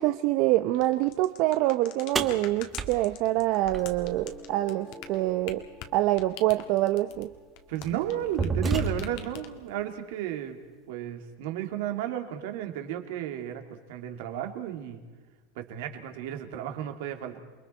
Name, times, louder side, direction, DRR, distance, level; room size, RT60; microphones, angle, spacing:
voice 1, 0.0-5.6 5.9-7.3, right 16 dB, 45° right, 9 dB, 0.7 m, -25 dB
sound 1, 0.7-8.5 8.7-9.7, left 10 dB, 50° left, 1.8 m, -44 dB
sound 2, 2.1-4.3 6.2-6.3 7.1-7.3 7.8-9.3, right 3 dB, 15° right, 1.4 m, -31 dB
sound 3, 3.8-9.8, left 1 dB, ahead, 2.1 m, -53 dB
voice 2, 7.7-10.6 10.9-15.0 15.6-17.4, right 11 dB, 60° right, 5 dB, 2.5 m, -33 dB
28.5 x 22.5 x 4.5 m, 1.4 s
supercardioid pair, 160°, 0 cm